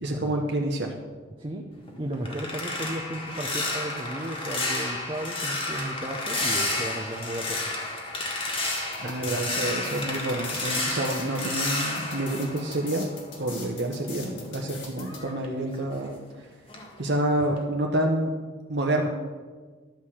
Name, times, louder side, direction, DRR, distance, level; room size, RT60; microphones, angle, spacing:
voice 1, 0.0-0.9 9.0-13.1 13.4-16.1 17.0-18.3 18.7-19.1, right 1 dB, 55° right, 1 dB, 0.9 m, -28 dB
sound 1, 1.7-13.4 13.7-16.4 16.7-17.0 17.4-17.6, left 2 dB, 25° left, 1.6 m, -31 dB
voice 2, 2.0-7.7 9.0-9.4, right 1 dB, 25° right, 1 dB, 0.7 m, -34 dB
sound 2, 8.6-15.2, left 5 dB, 65° left, 2.0 m, -41 dB
12.0 x 4.8 x 7.2 m, 1.4 s
head